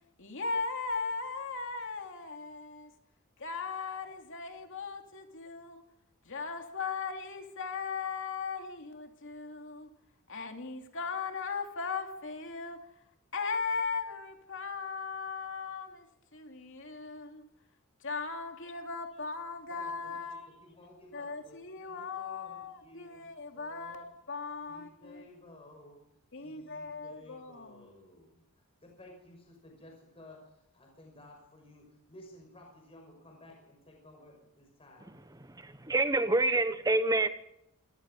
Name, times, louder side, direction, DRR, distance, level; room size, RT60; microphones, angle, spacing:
voice 1, 0.2-2.9 3.4-5.8 6.2-9.9 10.3-12.9 13.3-16.1 16.3-17.5 18.0-20.5 21.1-25.2 26.3-28.0, left 4 dB, 60° left, 3.0 m, -38 dB
voice 2, 19.8-24.1 24.7-26.0 26.4-28.4 28.8-35.4, left 1 dB, 25° left, 5.9 m, -55 dB
voice 3, 35.6-37.3, right 2 dB, 15° right, 1.2 m, -27 dB
27.5 x 18.5 x 5.5 m
head